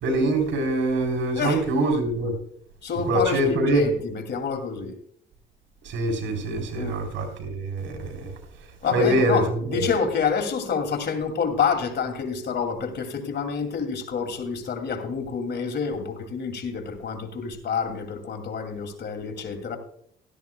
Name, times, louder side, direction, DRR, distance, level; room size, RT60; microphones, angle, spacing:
voice 1, 0.0-2.3 3.0-3.8 5.8-8.3 8.9-9.8, right 1 dB, 80° right, 3.6 m, -24 dB
voice 2, 2.8-5.0 6.7-7.1 8.8-19.8, left 6 dB, 60° left, 2.5 m, -28 dB
16.5 x 13.0 x 2.2 m
cardioid pair, 90°, 20 cm